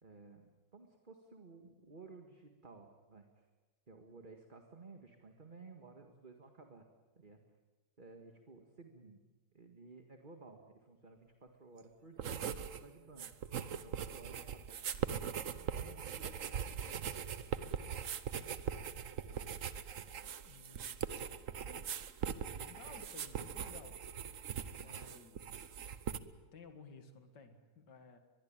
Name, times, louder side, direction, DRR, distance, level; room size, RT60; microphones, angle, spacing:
voice 1, 0.0-3.5 3.9-6.9 7.2-7.4 8.0-9.2 9.5-13.3 13.7-16.6 16.8-17.3, right 3 dB, 30° right, 4 dB, 1.9 m, -56 dB
sound 1, 12.2-12.8 13.1-26.2, right 8 dB, 50° right, 1.2 m, -41 dB
voice 2, 20.4-21.2 21.7-22.0 22.5-24.1 24.8-25.7 26.5-28.2, left 4 dB, 70° left, 7 dB, 2.5 m, -56 dB
23.5 x 21.5 x 8.9 m, 1.2 s
omnidirectional pair, 1.9 m